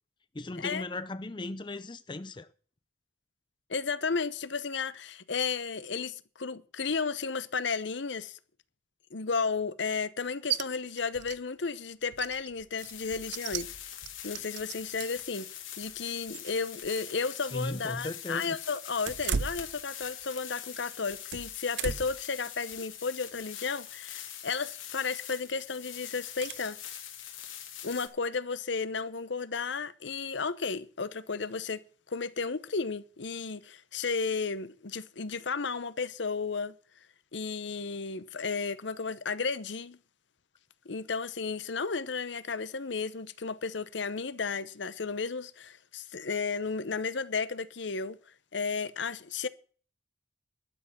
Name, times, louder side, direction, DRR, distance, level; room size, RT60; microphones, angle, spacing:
voice 1, 0.3-2.5 17.5-18.6, left 2 dB, 25° left, 0.5 m, -37 dB
voice 2, 3.7-8.4 9.1-13.7 14.2-26.8 27.8-31.8 32.1-36.7 37.3-40.0 40.8-48.2 48.5-49.5, left 5 dB, 70° left, 0.8 m, -33 dB
sound 1, 10.5-10.6 11.0-11.4 11.7-11.8 12.1-15.3 15.8-17.2 17.4-17.5 19.0-20.4 20.7-22.2 22.7-23.0 24.4-24.7 25.2-25.6 26.4-26.6, right 7 dB, 60° right, 0.6 m, -37 dB
sound 2, 12.8-28.1, left 10 dB, 90° left, 2.7 m, -44 dB
12.0 x 7.5 x 7.3 m
head